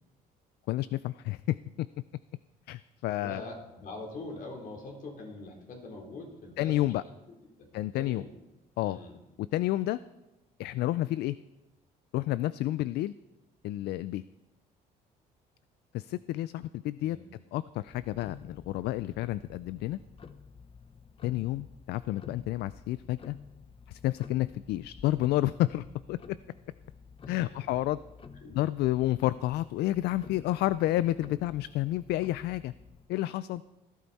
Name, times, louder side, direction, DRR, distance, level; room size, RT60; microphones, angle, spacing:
voice 1, 0.7-1.9 2.7-3.4 6.6-7.0 7.7-8.2 8.8-9.0 9.4-10.0 10.6-11.4 12.1-13.1 13.6-14.2 15.9-17.2 17.5-20.0 21.2-23.4 23.9-26.2 27.3-28.0 28.5-32.7 33.1-33.6, left 15 dB, 75° left, 16 dB, 0.4 m, -30 dB
voice 2, 3.2-6.9 7.6-8.3 8.8-9.2 17.0-17.3 27.3-27.8 28.4-28.6, left 2 dB, 55° left, 1 dB, 3.6 m, -44 dB
Tick-tock, 17.8-33.1, left 6 dB, 30° left, 0.8 m, -50 dB
18.0 x 12.0 x 4.2 m, 1.0 s
cardioid pair, 110°, 17 cm